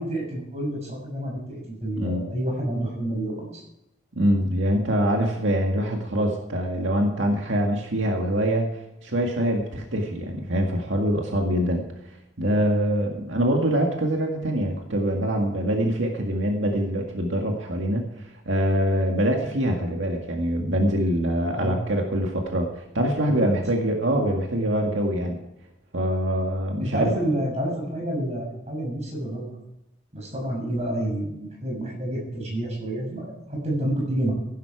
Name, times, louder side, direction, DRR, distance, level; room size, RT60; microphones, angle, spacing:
voice 1, 0.0-3.6 12.4-12.5 21.5-21.8 23.3-23.5 26.8-29.6 30.1-34.3, right 1 dB, 35° right, -2 dB, 6.8 m, -29 dB
voice 2, 4.1-11.8 12.4-25.4 25.9-27.1, equal, 85° right, 1 dB, 1.9 m, -24 dB
16.0 x 11.5 x 4.8 m, 0.87 s
head